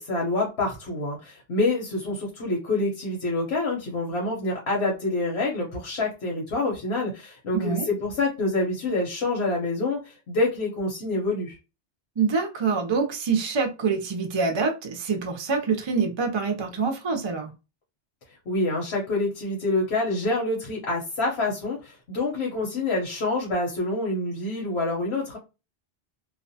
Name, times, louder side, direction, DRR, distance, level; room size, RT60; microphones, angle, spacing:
voice 1, 0.0-11.6 18.5-25.4, left 2 dB, 80° left, 1.1 m, -27 dB
voice 2, 7.5-7.9 12.2-17.5, right 5 dB, 45° right, 0.3 m, -25 dB
2.5 x 2.1 x 2.6 m
omnidirectional pair, 1.1 m